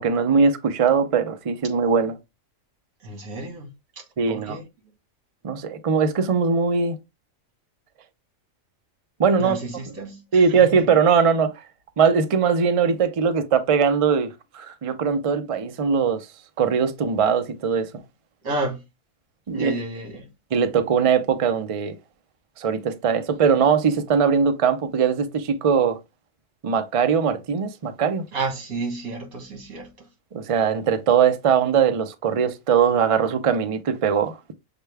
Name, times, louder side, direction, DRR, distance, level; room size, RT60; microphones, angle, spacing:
voice 1, 0.0-2.1 4.2-4.6 5.4-7.0 9.2-9.6 10.3-11.5 12.0-16.3 16.6-17.9 19.5-19.7 20.5-22.0 22.6-26.0 26.6-28.3 30.3-34.4, right 6 dB, 50° right, 0.4 m, -20 dB
voice 2, 3.0-3.7 4.0-4.7 9.4-10.9 18.4-18.8 19.5-20.3 28.3-30.1, right 2 dB, 85° right, 1.9 m, -31 dB
6.5 x 2.2 x 3.3 m
omnidirectional pair, 1.4 m